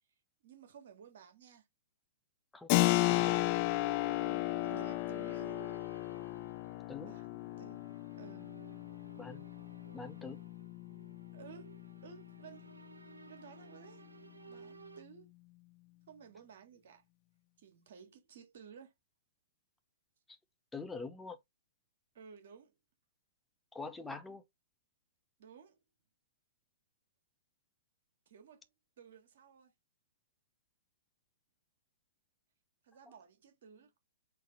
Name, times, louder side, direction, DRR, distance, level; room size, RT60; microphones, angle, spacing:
voice 1, 0.4-1.7 4.2-5.5 7.0-7.9 8.2-8.5 11.3-12.7 13.3-14.0 14.5-15.3 16.1-17.0 17.6-18.9 22.1-22.7 25.4-25.8 28.3-28.7 29.0-29.7 32.8-34.0, right 7 dB, 55° right, 1.4 m, -55 dB
voice 2, 2.5-3.4 6.9-7.1 9.2-9.4 9.9-10.4 20.7-21.4 23.7-24.4 33.1-33.2, left 4 dB, 5° left, 0.7 m, -44 dB
Keyboard (musical), 2.7-13.1, left 19 dB, 35° left, 0.4 m, -35 dB
sound 1, 3.1-15.0, right 5 dB, 80° right, 0.7 m, -56 dB
4.0 x 2.8 x 3.8 m
figure-of-eight pair, 115°, 0 cm